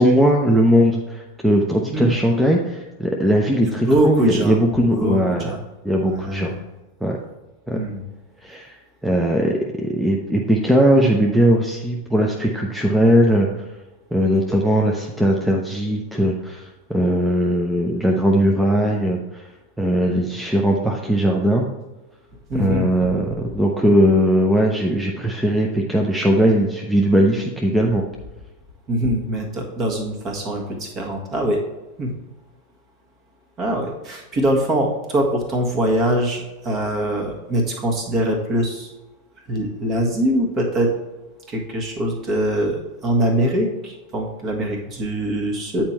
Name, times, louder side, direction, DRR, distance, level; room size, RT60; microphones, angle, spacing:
voice 1, 0.0-5.6 5.8-6.5 7.0-7.2 7.7-7.8 8.4-8.8 9.0-13.7 14.1-19.4 19.8-21.6 22.5-28.1, equal, 5° right, 0 dB, 0.7 m, -19 dB
voice 2, 3.8-4.6 4.9-5.6 6.0-6.6 7.7-8.0 22.5-23.1 28.9-31.6 32.0-32.1 33.6-38.9 39.5-40.9 41.5-45.8, right 1 dB, 30° right, 2 dB, 1.5 m, -23 dB
8.6 x 4.5 x 4.2 m, 1.1 s
figure-of-eight pair, 90°, 0 cm